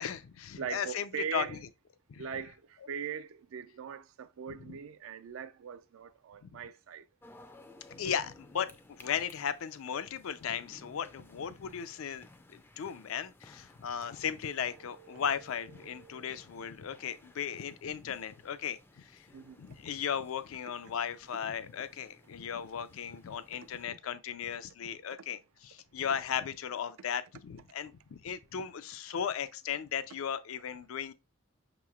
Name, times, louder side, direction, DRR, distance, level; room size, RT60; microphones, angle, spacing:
voice 1, 0.0-1.6 2.1-2.2 4.5-4.8 6.4-6.6 7.9-19.3 19.6-31.1, left 8 dB, 80° left, 0.4 m, -36 dB
voice 2, 0.6-1.6 2.2-7.0 14.8-15.2 15.8-16.5 19.3-19.6, right 8 dB, 80° right, 0.4 m, -41 dB
sound 1, 7.2-23.9, left 2 dB, 10° left, 0.3 m, -58 dB
5.5 x 3.0 x 2.3 m
head